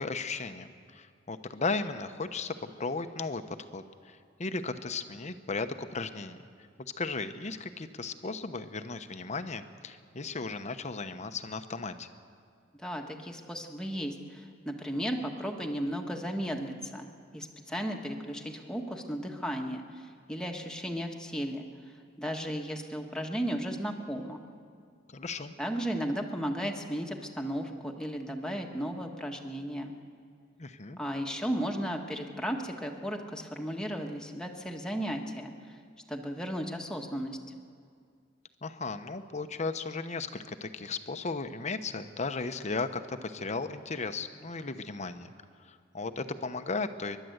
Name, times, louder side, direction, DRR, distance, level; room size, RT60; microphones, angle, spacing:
voice 1, 0.0-6.4 7.0-12.1 25.1-25.5 30.6-31.0 38.6-45.3 45.6-47.2, left 3 dB, 35° left, 9 dB, 0.9 m, -36 dB
voice 2, 12.8-24.4 25.6-29.9 31.0-35.8 36.1-37.5, equal, 5° left, 1 dB, 1.5 m, -35 dB
30.0 x 11.5 x 8.0 m, 2.2 s
head